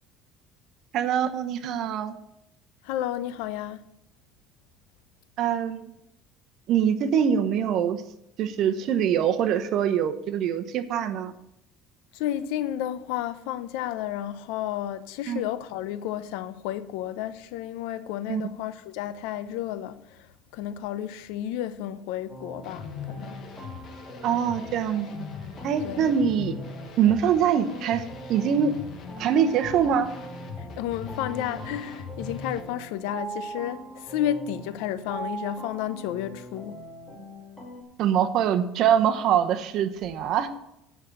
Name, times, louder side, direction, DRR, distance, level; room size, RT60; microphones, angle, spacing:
voice 1, 0.9-2.1 5.4-5.8 6.7-8.0 8.4-11.3 15.3-15.4 18.3-18.4 24.2-25.3 25.6-26.5 27.0-28.0 28.3-28.7 29.2-30.1 38.0-40.5, right 8 dB, 55° right, 1.0 m, -24 dB
voice 2, 2.8-3.8 12.1-20.3 20.5-23.4 25.8-26.1 30.8-36.8, left 11 dB, 85° left, 0.7 m, -32 dB
sound 1, 22.3-37.8, right 2 dB, 5° left, 2.1 m, -42 dB
sound 2, 22.6-32.6, left 6 dB, 45° left, 1.4 m, -40 dB
9.4 x 6.1 x 7.7 m
cardioid pair, 130°, 0 cm